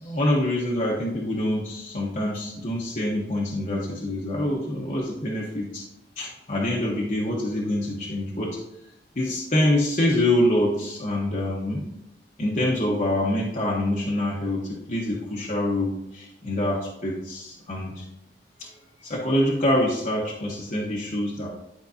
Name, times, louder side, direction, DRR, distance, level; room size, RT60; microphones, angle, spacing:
voice 1, 0.0-5.8 6.2-8.6 9.1-11.8 12.4-18.0 18.6-18.7 19.0-21.5, left 1 dB, 45° left, -4 dB, 1.0 m, -25 dB
11.0 x 4.6 x 2.7 m, 0.83 s
head